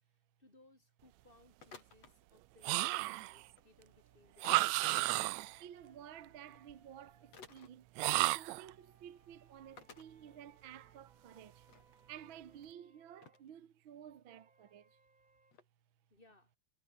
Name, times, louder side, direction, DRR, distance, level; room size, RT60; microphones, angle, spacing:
voice 1, 0.0-4.9 16.1-16.5, left 2 dB, 15° left, 6.3 m, -66 dB
sound 1, 1.6-2.1 3.5-3.6 4.4-4.8 6.5-6.6 7.3-7.7 8.6-8.7 9.0-9.1 9.8-10.1 10.8-10.9 11.2-11.8 12.5-12.6 13.2-13.5 15.5-15.6, left 5 dB, 50° left, 5.0 m, -55 dB
sound 2, 2.6-3.4 4.4-5.6 8.0-8.7, right 20 dB, 90° right, 1.5 m, -32 dB
sound 3, 2.8-7.4 8.1-13.5 14.3-15.5, right 2 dB, 25° right, 6.0 m, -71 dB
voice 2, 5.6-7.9 8.3-11.7 12.1-15.0, right 10 dB, 50° right, 1.7 m, -53 dB
omnidirectional pair, 3.7 m